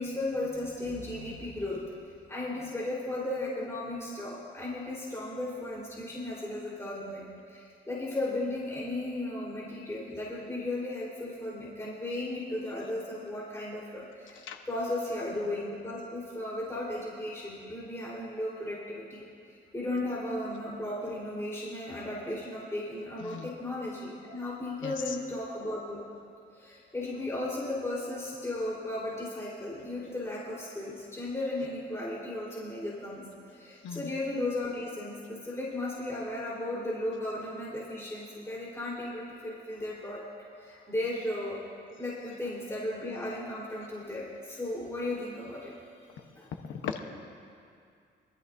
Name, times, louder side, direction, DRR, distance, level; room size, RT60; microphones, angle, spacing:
voice 1, 0.0-1.8 2.3-7.2 7.5-19.2 19.5-26.0 26.5-33.2 33.5-40.2 40.6-41.6 42.0-45.7 46.4-46.5, left 1 dB, 15° left, -7 dB, 3.9 m, -35 dB
voice 2, 24.8-25.2 33.8-34.1 46.2-46.3 46.6-47.0, left 8 dB, 75° left, 5 dB, 1.0 m, -38 dB
23.0 x 13.5 x 2.7 m, 2.4 s
cardioid pair, 90°, 20 cm